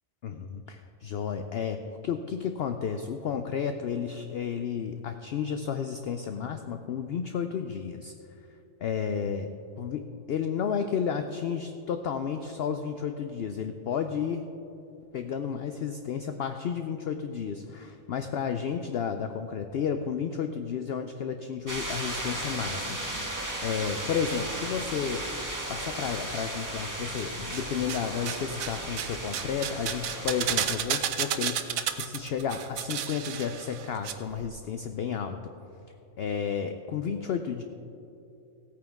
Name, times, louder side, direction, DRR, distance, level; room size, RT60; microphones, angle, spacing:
voice 1, 0.2-1.8 2.0-8.1 8.8-9.5 9.8-14.4 15.1-23.4 23.6-25.2 25.7-35.5 36.2-37.6, left 7 dB, 65° left, 7 dB, 0.6 m, -32 dB
sound 1, 21.7-30.7, right 1 dB, 15° right, 1.4 m, -35 dB
sound 2, 27.2-28.0 28.3-34.1 34.4-34.5, right 9 dB, 80° right, 1.1 m, -32 dB
16.0 x 8.9 x 3.5 m, 2.7 s
omnidirectional pair, 1.4 m